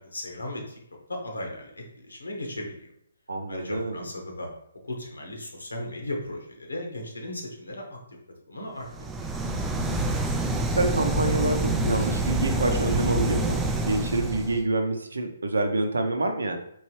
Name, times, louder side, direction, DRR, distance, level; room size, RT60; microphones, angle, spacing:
voice 1, 0.0-2.9 3.5-4.5 4.8-8.0 8.5-8.9, left 1 dB, 80° left, 1 dB, 1.1 m, -36 dB
voice 2, 3.3-4.1 10.6-16.6, right 2 dB, 75° right, 6 dB, 0.6 m, -27 dB
sound 1, 8.9-14.6, right 2 dB, 10° right, 0.3 m, -27 dB
Glass, 9.4-14.6, equal, 40° left, 0.8 m, -41 dB
4.5 x 3.1 x 3.1 m, 0.74 s
figure-of-eight pair, 135°, 0 cm